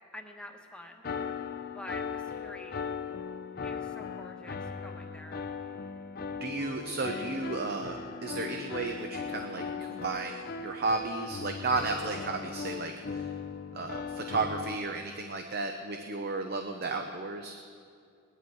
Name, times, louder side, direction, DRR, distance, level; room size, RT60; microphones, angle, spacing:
voice 1, 0.1-1.1 1.7-2.8 3.6-5.5, left 1 dB, 5° left, 2 dB, 1.2 m, -47 dB
sound 1, 1.0-14.8, left 5 dB, 50° left, 0.6 m, -38 dB
voice 2, 6.3-13.3 13.7-17.6, right 3 dB, 55° right, 5 dB, 0.7 m, -33 dB
19.5 x 11.0 x 4.7 m, 2.4 s
head